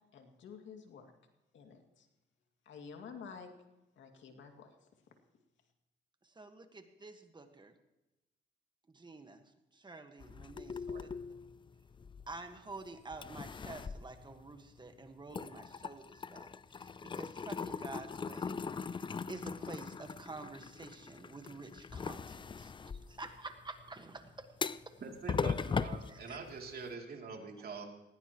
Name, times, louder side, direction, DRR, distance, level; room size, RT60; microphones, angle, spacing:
voice 1, 0.1-1.1 1.5-2.1 2.7-3.5 4.0-4.9, left 6 dB, 70° left, 4 dB, 2.4 m, -50 dB
voice 2, 6.2-7.7 8.9-11.1 12.3-18.6 18.9-25.0 26.1-26.4, right 3 dB, 25° right, 7 dB, 1.6 m, -49 dB
sound 1, 10.2-12.7 13.1-14.9 15.2-26.9, left 5 dB, 25° left, 0.4 m, -40 dB
voice 3, 25.0-27.8, right 5 dB, 50° right, 2 dB, 3.0 m, -44 dB
19.5 x 17.0 x 3.1 m, 1.0 s
cardioid pair, 90°, 20 cm